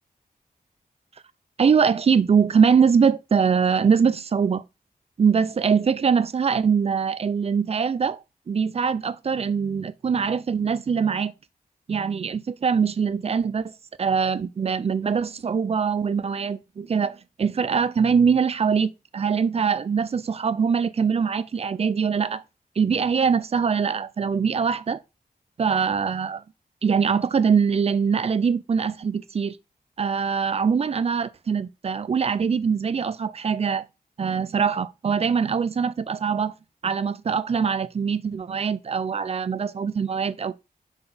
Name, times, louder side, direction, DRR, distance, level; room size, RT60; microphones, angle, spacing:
voice 1, 1.6-4.6 5.2-11.3 11.9-13.7 14.0-22.4 22.8-25.0 25.6-26.4 26.8-29.6 30.0-33.8 34.2-36.5 36.8-40.5, right 6 dB, 40° right, 0.4 m, -23 dB
6.0 x 4.3 x 3.8 m
wide cardioid pair, 150°, 15 cm